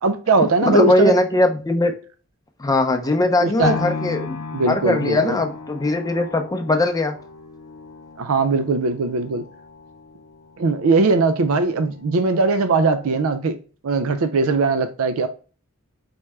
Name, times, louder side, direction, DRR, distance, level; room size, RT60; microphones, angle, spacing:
voice 1, 0.0-1.1 3.4-3.8 4.5-5.4 8.2-9.5 10.6-13.6 13.8-15.3, right 3 dB, 70° right, 0.4 m, -20 dB
voice 2, 0.7-1.9 2.6-4.4 4.7-7.2, left 2 dB, 15° left, 0.6 m, -20 dB
sound 1, 3.6-11.7 12.2-12.3, left 4 dB, 80° left, 0.6 m, -34 dB
4.4 x 3.2 x 3.4 m
head